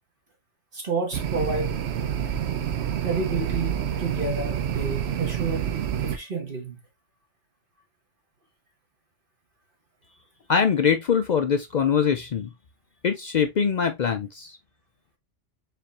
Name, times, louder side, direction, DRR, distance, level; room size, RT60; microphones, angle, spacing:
voice 1, 0.7-1.7 3.0-5.7 6.0-6.8, right 3 dB, 50° right, 1.5 m, -30 dB
sound 1, 1.1-6.2, right 9 dB, 70° right, 0.8 m, -28 dB
voice 2, 10.5-12.5 13.0-14.6, left 7 dB, 55° left, 0.5 m, -23 dB
4.9 x 3.3 x 2.7 m
omnidirectional pair, 1.2 m